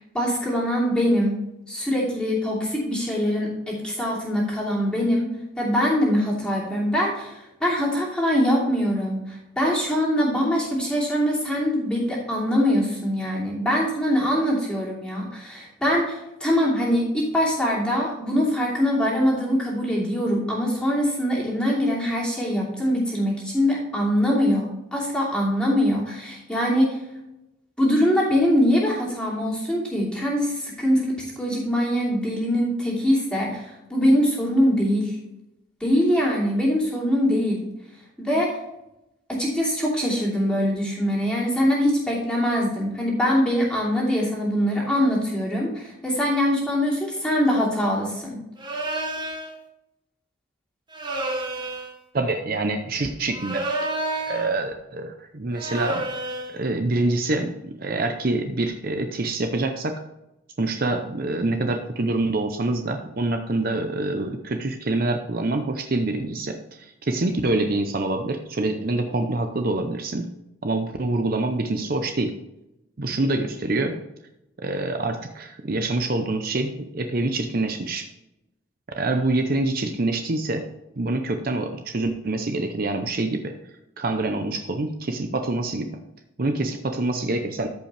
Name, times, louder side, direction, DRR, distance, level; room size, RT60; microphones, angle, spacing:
voice 1, 0.0-1.4 1.7-5.3 5.6-27.0 27.8-35.2 35.8-37.6 38.2-38.5 39.3-48.4, equal, 5° left, -5 dB, 2.8 m, -23 dB
sound 1, 48.6-49.5 50.9-52.0 53.3-54.5 55.5-56.6, right 2 dB, 20° right, 1.1 m, -29 dB
voice 2, 52.1-53.7 54.0-56.0 56.5-60.0 60.6-70.3 70.6-72.4 73.0-74.0 74.6-78.1 79.0-80.7 81.0-83.6 84.0-86.0 86.4-87.7, right 2 dB, 45° right, 6 dB, 0.6 m, -26 dB
14.0 x 5.3 x 3.3 m, 0.90 s
head